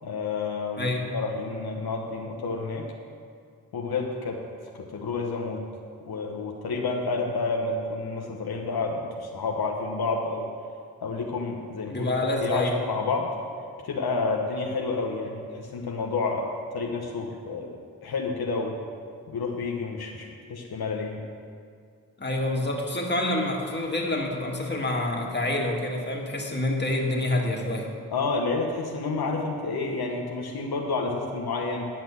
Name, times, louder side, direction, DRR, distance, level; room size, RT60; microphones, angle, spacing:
voice 1, 0.0-2.9 3.7-4.4 4.7-5.6 6.1-10.5 11.0-12.1 12.4-13.3 13.8-18.8 19.3-21.2 28.1-31.9, left 3 dB, 80° left, 0 dB, 1.1 m, -30 dB
voice 2, 11.9-12.8 22.2-27.9, left 1 dB, 30° left, 0 dB, 2.0 m, -27 dB
11.0 x 5.9 x 7.1 m, 2.2 s
cardioid pair, 40°, 37 cm